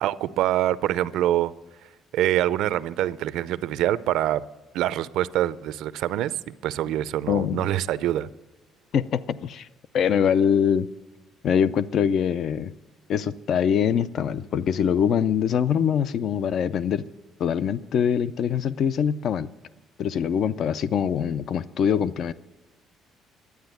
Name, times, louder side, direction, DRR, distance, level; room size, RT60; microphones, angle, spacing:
voice 1, 0.0-1.5 2.1-4.4 4.7-8.3, right 13 dB, 70° right, 0.5 m, -25 dB
voice 2, 7.3-7.6 8.9-9.7 9.9-10.9 11.4-12.7 13.1-17.0 17.4-19.5 20.0-22.3, left 8 dB, 45° left, 0.4 m, -23 dB
12.0 x 9.4 x 9.1 m
cardioid pair, 170°, 0 cm